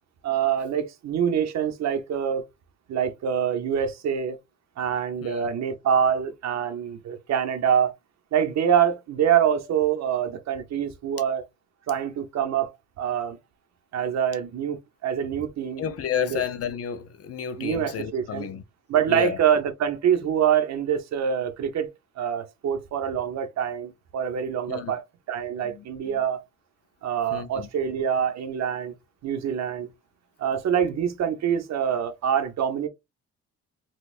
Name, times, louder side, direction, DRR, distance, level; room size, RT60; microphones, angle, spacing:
voice 1, 0.2-2.4 2.9-4.4 4.8-7.9 8.3-11.4 11.9-12.7 13.0-13.4 13.9-15.8 16.1-16.4 17.6-18.5 18.9-21.9 22.2-25.0 25.3-26.4 27.0-28.9 29.2-29.9 30.4-32.9, right 8 dB, 60° right, 0.8 m, -25 dB
voice 2, 15.8-18.6 19.1-19.4 24.7-24.9 25.6-25.8 27.3-27.7, left 9 dB, 50° left, 0.6 m, -31 dB
4.1 x 2.3 x 2.4 m
cardioid pair, 90°, 30 cm